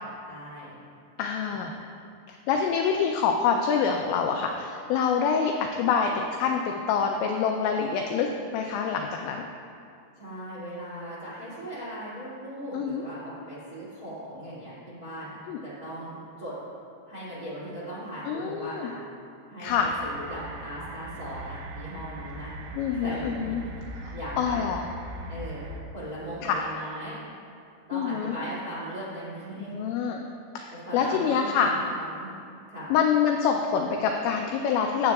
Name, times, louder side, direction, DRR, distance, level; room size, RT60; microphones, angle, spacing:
voice 1, 0.3-0.7 1.6-1.7 10.2-15.3 15.6-16.5 17.1-18.9 19.5-22.5 22.9-23.8 24.1-24.6 25.3-27.2 27.9-30.1 30.8-32.3 32.7-33.0, equal, 35° right, -9 dB, 1.5 m, -38 dB
voice 2, 1.2-1.7 2.3-9.5 12.7-13.0 15.5-15.6 18.3-18.9 19.6-19.9 22.7-23.6 24.0-24.8 26.4-26.6 27.9-28.4 29.6-30.2 30.6-31.7 32.9-35.1, left 6 dB, 85° left, 3 dB, 2.6 m, -26 dB
sound 1, 19.6-25.8, right 1 dB, 80° right, 3.3 m, -40 dB
18.0 x 7.5 x 2.3 m, 2.5 s
omnidirectional pair, 5.7 m